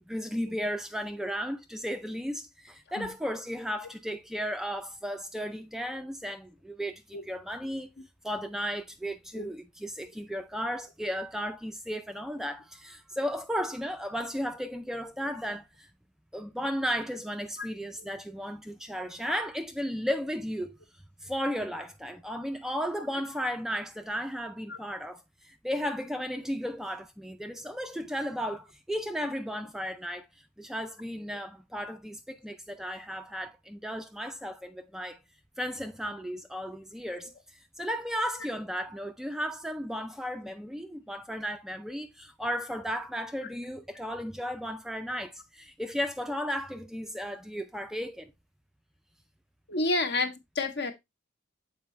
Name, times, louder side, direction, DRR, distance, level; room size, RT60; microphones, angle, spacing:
voice 1, 0.1-7.9 8.2-15.9 16.3-20.8 21.2-30.3 30.6-35.2 35.6-48.3, equal, ahead, 0.4 m, -34 dB
voice 2, 49.7-50.9, left 2 dB, 60° left, 1.0 m, -29 dB
7.3 x 4.6 x 3.1 m
head